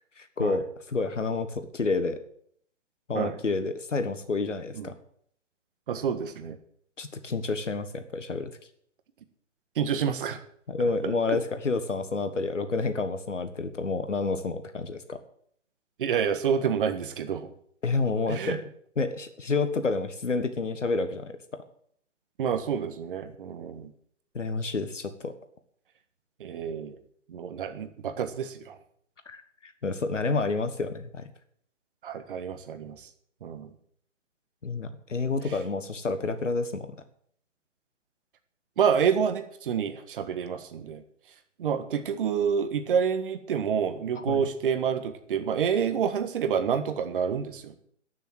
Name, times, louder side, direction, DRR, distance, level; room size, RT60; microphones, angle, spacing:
voice 1, 0.2-2.2 3.1-4.9 7.0-8.5 10.7-15.2 17.8-18.6 19.0-21.6 24.3-25.3 29.3-31.3 34.6-36.9 44.3-44.5, left 3 dB, 80° left, 10 dB, 1.6 m, -29 dB
voice 2, 5.9-6.6 9.8-10.4 11.0-11.4 16.0-17.5 18.3-18.6 22.4-23.9 26.4-27.0 27.3-28.8 32.0-33.0 33.4-33.7 38.8-41.0 41.6-47.7, right 7 dB, 45° right, 9 dB, 1.6 m, -28 dB
13.0 x 6.9 x 8.9 m, 0.65 s
figure-of-eight pair, 130°, 36 cm